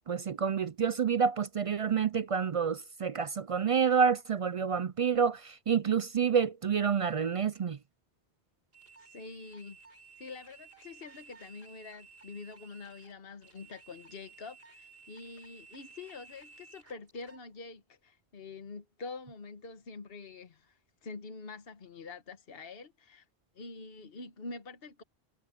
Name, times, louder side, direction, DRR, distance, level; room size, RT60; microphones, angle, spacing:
voice 1, 0.1-7.8, right 6 dB, 55° right, 0.4 m, -28 dB
sound 1, 8.7-17.4, right 4 dB, 70° right, 8.4 m, -55 dB
voice 2, 9.0-9.8 10.2-23.3 23.5-25.0, left 4 dB, 70° left, 1.5 m, -46 dB
omnidirectional pair, 1.0 m